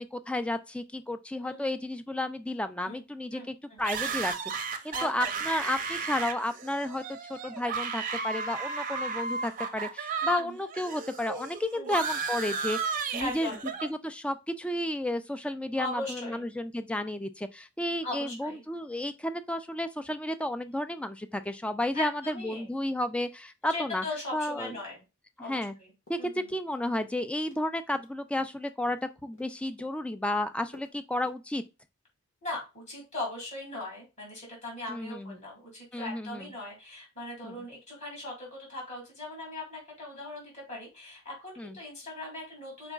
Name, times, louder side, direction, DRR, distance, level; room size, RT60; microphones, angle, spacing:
voice 1, 0.0-13.5 13.9-24.0 24.3-24.7 25.5-25.7 26.1-31.6 34.9-35.4 35.9-36.5 37.4-37.6 41.6-41.8, left 1 dB, 5° left, 0.3 m, -32 dB
voice 2, 1.4-1.8 2.9-3.0 3.3-3.8 4.9-5.4 10.4-10.6 11.7-12.0 13.2-13.7 15.8-16.5 18.0-18.6 21.9-22.7 23.7-25.0 25.4-25.9 26.2-26.5 32.4-42.9, left 2 dB, 35° left, 2.7 m, -39 dB
sound 1, 3.8-10.4 10.7-13.9, right 5 dB, 40° right, 0.6 m, -34 dB
sound 2, 26.1-26.8 27.0-27.6 27.9-29.5 29.8-30.4 30.7-31.0 31.2-31.4, left 1 dB, 65° left, 1.7 m, -56 dB
5.0 x 4.4 x 2.4 m
head